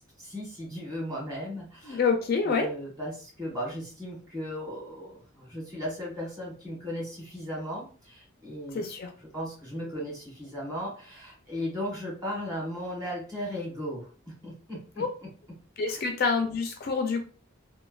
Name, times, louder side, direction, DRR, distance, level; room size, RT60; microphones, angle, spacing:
voice 1, 0.0-2.0 2.4-8.9 9.3-15.3 15.9-16.0, equal, 15° right, -4 dB, 1.3 m, -36 dB
voice 2, 1.9-2.7 8.7-9.1 15.0-15.1 15.8-17.2, left 5 dB, 45° left, 5 dB, 0.3 m, -27 dB
3.1 x 2.1 x 2.3 m, 0.39 s
head